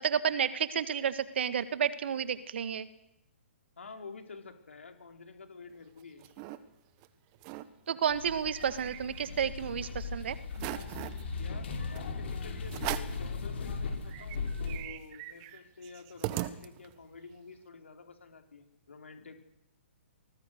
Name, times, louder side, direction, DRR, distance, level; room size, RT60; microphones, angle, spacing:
voice 1, 0.0-2.9 7.9-10.4, right 8 dB, 60° right, 13 dB, 1.8 m, -31 dB
voice 2, 3.8-6.3 11.4-19.3, left 4 dB, 75° left, 6 dB, 4.0 m, -50 dB
sound 1, 5.7-6.6 7.0-7.1 7.3-7.7 8.1-9.7 10.1-10.2 10.5-11.2 11.9-12.1 12.7-13.3 13.7-13.8 14.0-17.1, right 15 dB, 35° right, 1.6 m, -40 dB
sound 2, 8.1-14.8, left 4 dB, 60° left, 6.3 m, -38 dB
25.5 x 19.5 x 6.6 m, 0.86 s
hypercardioid pair, 130°, 7 cm